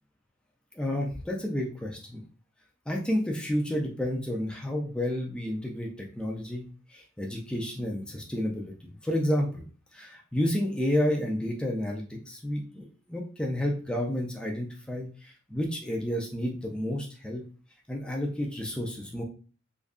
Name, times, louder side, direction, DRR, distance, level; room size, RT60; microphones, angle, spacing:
voice 1, 0.7-2.2 2.9-9.6 9.9-17.4 17.9-19.2, left 1 dB, 5° left, 0 dB, 0.5 m, -31 dB
3.1 x 2.5 x 3.6 m, 0.38 s
head